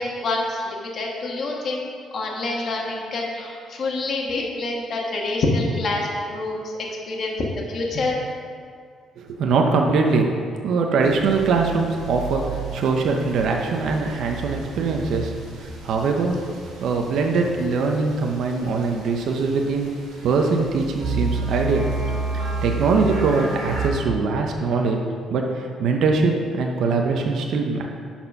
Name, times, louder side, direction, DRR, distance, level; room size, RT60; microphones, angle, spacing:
voice 1, 0.0-6.7 7.1-8.2, left 2 dB, 45° left, -1 dB, 1.4 m, -26 dB
voice 2, 9.2-10.3 10.6-15.3 15.6-16.4 16.8-20.0 20.2-21.8 22.3-25.0 25.3-27.9, right 4 dB, 65° right, 2 dB, 0.8 m, -22 dB
sound 1, 11.0-23.9, right 3 dB, 85° right, 1.9 m, -31 dB
10.5 x 4.4 x 5.3 m, 2.2 s
cardioid pair, 145°, 0 cm